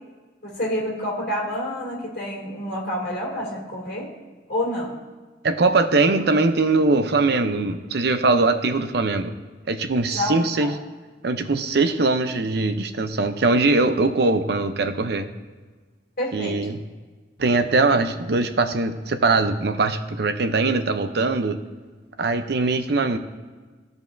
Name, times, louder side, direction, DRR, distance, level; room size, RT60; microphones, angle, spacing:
voice 1, 0.4-4.1 4.5-5.0 10.1-10.7 16.2-16.7, left 1 dB, 55° left, -4 dB, 2.5 m, -28 dB
voice 2, 5.4-9.3 9.7-10.8 11.2-15.3 16.3-16.8 17.4-21.6 22.2-23.2, right 3 dB, 60° right, 8 dB, 0.6 m, -21 dB
14.5 x 5.3 x 2.6 m, 1.3 s
head